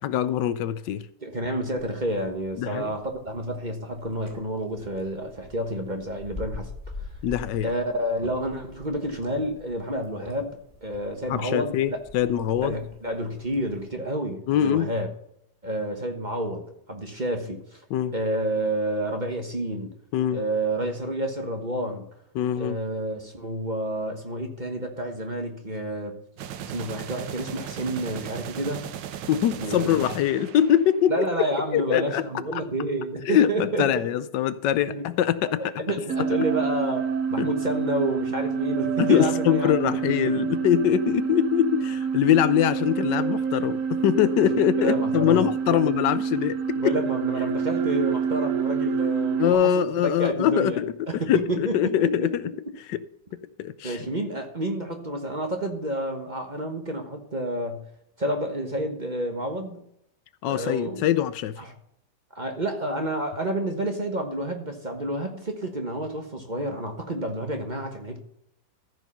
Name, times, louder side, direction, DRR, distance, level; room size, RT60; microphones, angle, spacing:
voice 1, 0.0-1.0 2.6-2.9 7.2-7.7 11.3-12.8 14.5-14.9 17.9-18.1 20.1-20.4 22.3-22.8 29.3-31.5 31.7-32.3 33.3-35.8 36.2-36.3 37.4-37.5 39.0-47.0 49.4-52.5 52.9-53.0 53.6-54.0 60.4-61.6, left 10 dB, 80° left, 1.3 m, -23 dB
voice 2, 1.2-6.7 7.0-7.1 7.6-12.0 12.6-15.1 15.6-16.6 16.9-17.8 18.1-19.9 20.3-22.0 22.6-26.1 26.6-28.9 29.5-29.9 31.1-34.1 34.9-35.0 35.4-39.7 40.2-40.4 44.8-45.8 46.8-50.8 51.1-52.3 53.8-57.8 58.2-59.8 60.5-61.0 61.6-61.7 62.3-68.2, right 1 dB, 30° right, 1.2 m, -29 dB
sound 1, 1.8-13.9, left 2 dB, 10° right, 3.8 m, -44 dB
sound 2, 26.4-31.2, right 10 dB, 90° right, 1.4 m, -37 dB
sound 3, 36.1-49.5, right 6 dB, 55° right, 1.0 m, -27 dB
14.0 x 5.4 x 5.6 m
omnidirectional pair, 1.9 m